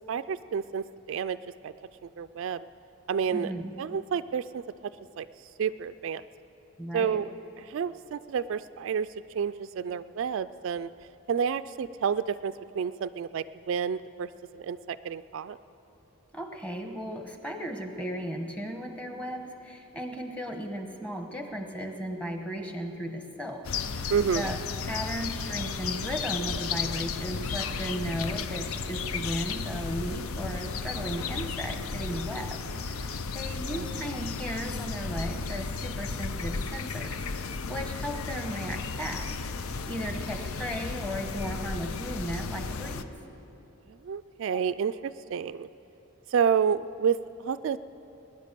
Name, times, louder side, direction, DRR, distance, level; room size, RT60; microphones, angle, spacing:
voice 1, 0.1-1.4 1.6-1.7 2.0-2.6 3.1-3.5 3.8-4.6 5.2-5.3 5.6-6.2 6.9-7.3 7.6-9.1 9.3-10.9 11.3-15.6 24.1-24.5 33.7-33.9 43.9-45.7 46.3-47.8, right 7 dB, 65° right, 14 dB, 0.3 m, -30 dB
voice 2, 3.3-3.7 6.8-7.2 16.3-23.7 23.9-24.1 24.3-24.6 24.8-43.1 44.5-44.6, equal, 5° left, 4 dB, 1.1 m, -36 dB
sound 1, 23.6-43.0, left 5 dB, 80° left, 0.6 m, -34 dB
20.0 x 10.5 x 6.7 m, 2.9 s
head